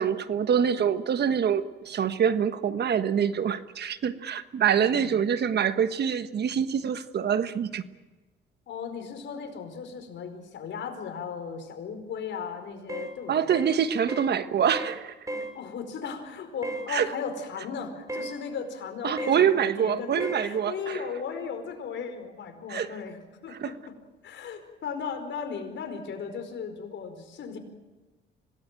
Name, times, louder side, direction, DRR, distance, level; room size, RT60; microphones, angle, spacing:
voice 1, 0.0-7.8 13.3-15.1 16.9-17.1 19.0-21.0 22.7-22.9 23.6-23.7, right 8 dB, 55° right, 11 dB, 1.3 m, -25 dB
voice 2, 4.7-5.1 8.7-13.5 15.5-24.0 24.2-27.6, left 6 dB, 70° left, 6 dB, 4.9 m, -36 dB
sound 1, 12.9-13.1 13.5-13.7 14.1-14.3 14.7-15.0 15.3-15.5 16.6-16.9 18.1-18.3 19.2-19.4 20.2-20.4, right 1 dB, 15° right, 4.4 m, -34 dB
26.0 x 18.5 x 9.0 m, 1.2 s
cardioid pair, 90°, 20 cm